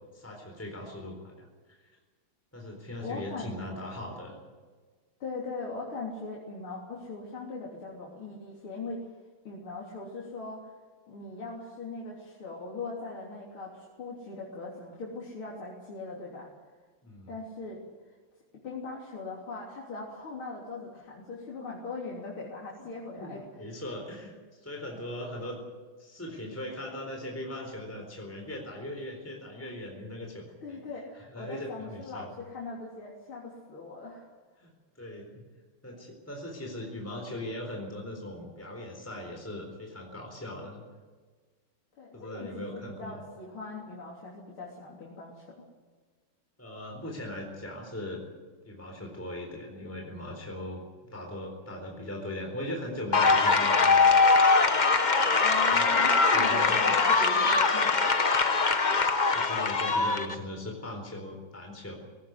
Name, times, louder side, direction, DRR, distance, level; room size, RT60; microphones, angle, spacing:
voice 1, 0.1-1.9 2.5-4.4 17.0-17.4 23.2-25.6 26.0-30.8 31.2-32.3 34.6-34.7 35.0-35.4 35.8-40.8 42.1-43.2 46.6-48.2 48.6-50.8 51.1-54.1 55.4-56.0 56.3-56.8 59.3-62.0, left 1 dB, 5° left, 1 dB, 4.0 m, -39 dB
voice 2, 3.0-3.5 5.2-9.1 9.4-10.7 11.1-16.5 17.3-17.8 18.6-23.7 30.6-34.3 42.0-45.6 55.4-58.2, left 3 dB, 75° left, -4 dB, 4.2 m, -40 dB
sound 1, 53.1-60.3, left 4 dB, 30° left, 0.8 m, -22 dB
19.5 x 18.0 x 9.5 m, 1.4 s
omnidirectional pair, 2.3 m